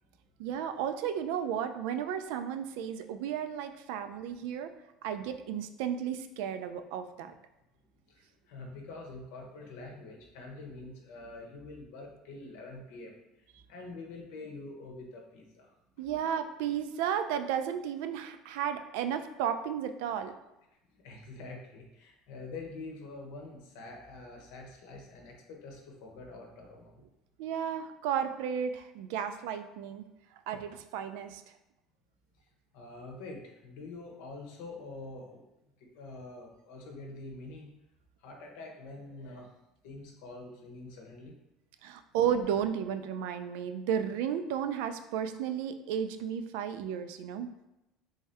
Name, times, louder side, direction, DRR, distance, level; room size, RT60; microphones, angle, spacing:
voice 1, 0.4-4.7 5.0-7.3 16.0-20.3 27.4-30.0 30.5-31.4 41.8-47.5, right 8 dB, 80° right, 9 dB, 0.3 m, -33 dB
voice 2, 8.1-16.1 20.9-26.9 32.7-35.4 35.8-37.7 38.2-39.5 39.8-41.4, left 2 dB, 85° left, 1 dB, 0.8 m, -46 dB
3.4 x 2.7 x 3.3 m, 0.91 s
cardioid pair, 165°, 0 cm